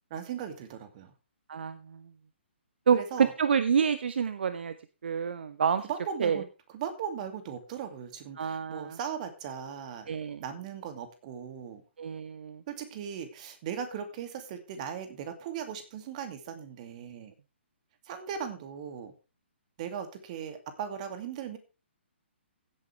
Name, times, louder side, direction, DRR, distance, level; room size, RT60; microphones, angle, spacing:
voice 1, 0.1-1.1 2.9-3.3 5.8-11.8 12.7-17.3 18.1-19.1 19.8-21.6, right 8 dB, 35° right, 7 dB, 2.4 m, -38 dB
voice 2, 1.5-2.0 2.9-4.7 5.0-5.9 6.2-6.4 8.4-9.0 10.1-10.4 12.0-12.6, right 7 dB, 60° right, 13 dB, 0.8 m, -28 dB
16.0 x 8.6 x 3.4 m, 0.31 s
figure-of-eight pair, 130°, 7 cm